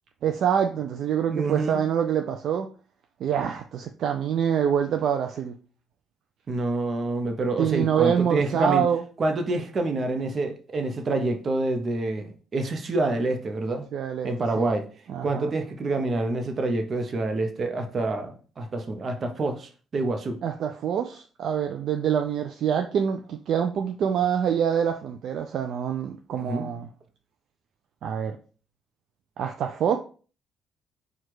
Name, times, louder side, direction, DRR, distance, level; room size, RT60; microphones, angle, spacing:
voice 1, 0.2-2.7 3.2-5.6 7.6-9.0 13.9-14.3 14.6-14.7 15.1-15.5 20.4-26.9 28.0-28.4 29.4-30.0, right 8 dB, 65° right, 0.4 m, -25 dB
voice 2, 1.3-1.8 6.5-8.8 9.2-13.9 14.2-14.9 15.2-20.4 26.4-26.7, right 2 dB, 45° right, 0.8 m, -27 dB
4.4 x 2.4 x 4.6 m
hypercardioid pair, 50°, 0 cm